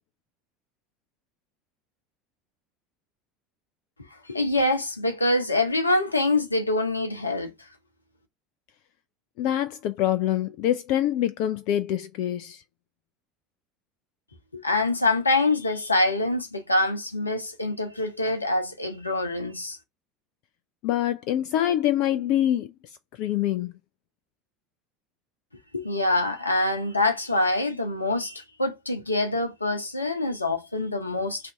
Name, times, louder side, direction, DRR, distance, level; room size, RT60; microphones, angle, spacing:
voice 1, 4.3-7.5 14.5-19.8 25.7-31.5, left 2 dB, 85° left, 0.8 m, -25 dB
voice 2, 9.4-12.6 20.8-23.7, left 12 dB, 50° left, 0.3 m, -25 dB
3.3 x 2.6 x 4.5 m
figure-of-eight pair, 70°, 0 cm